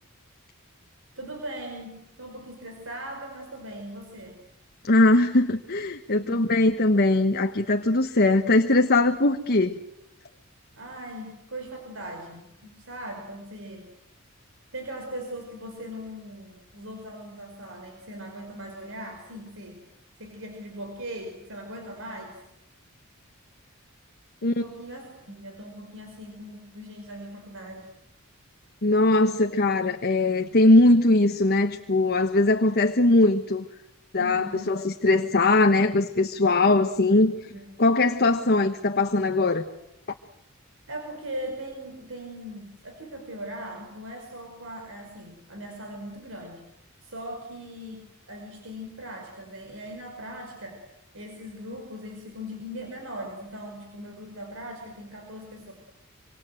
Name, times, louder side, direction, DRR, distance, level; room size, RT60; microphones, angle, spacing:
voice 1, 1.2-4.4 6.1-6.5 10.8-13.9 14.7-19.8 20.2-22.4 24.4-27.9 34.2-34.7 37.3-37.7 40.9-50.8 51.1-55.7, equal, 65° right, 3 dB, 5.4 m, -39 dB
voice 2, 4.8-9.8 24.4-24.6 28.8-33.7 34.1-37.3 37.8-39.7, left 2 dB, 50° left, 6 dB, 1.2 m, -21 dB
26.5 x 26.0 x 7.9 m, 0.83 s
head